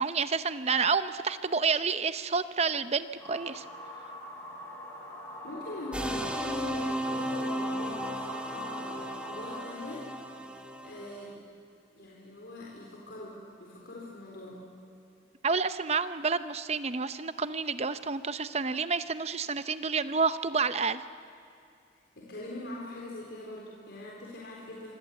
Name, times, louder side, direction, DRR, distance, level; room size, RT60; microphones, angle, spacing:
voice 1, 0.0-3.6 15.4-21.0, right 5 dB, 35° right, 12 dB, 0.7 m, -29 dB
sound 1, 3.2-9.6, left 1 dB, 15° left, 5.4 m, -43 dB
voice 2, 5.4-10.1 10.8-11.4 11.9-14.6 22.2-25.0, left 1 dB, 90° left, -3 dB, 4.0 m, -42 dB
sound 2, 5.9-11.3, equal, 5° right, 1.8 m, -35 dB
26.0 x 25.0 x 8.3 m, 2.5 s
head